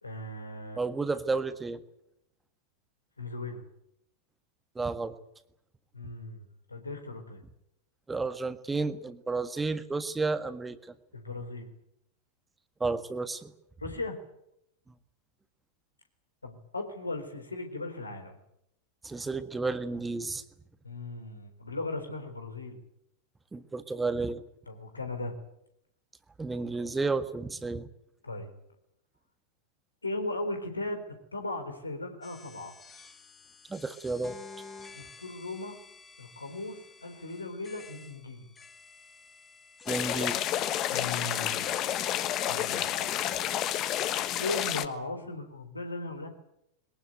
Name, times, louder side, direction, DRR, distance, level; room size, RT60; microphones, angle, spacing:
voice 1, 0.0-0.8 3.2-3.6 5.9-7.4 11.1-11.7 13.8-14.2 16.4-18.4 20.8-22.8 24.7-25.4 28.2-28.5 30.0-31.0 31.3-32.7 34.9-35.8 36.2-38.5 40.9-41.7 42.5-43.1 44.4-46.3, left 2 dB, 80° left, 6 dB, 3.9 m, -37 dB
voice 2, 0.8-1.8 4.7-5.1 8.1-10.8 12.8-13.5 19.0-20.4 23.5-24.4 26.4-27.9 33.7-34.4 39.9-40.4, right 3 dB, 10° right, 12 dB, 1.6 m, -31 dB
sound 1, 32.2-42.9, left 4 dB, 15° left, 1.9 m, -50 dB
sound 2, 39.9-44.9, left 11 dB, 35° left, 1.3 m, -30 dB
22.0 x 19.5 x 9.1 m, 0.79 s
figure-of-eight pair, 90°, 0 cm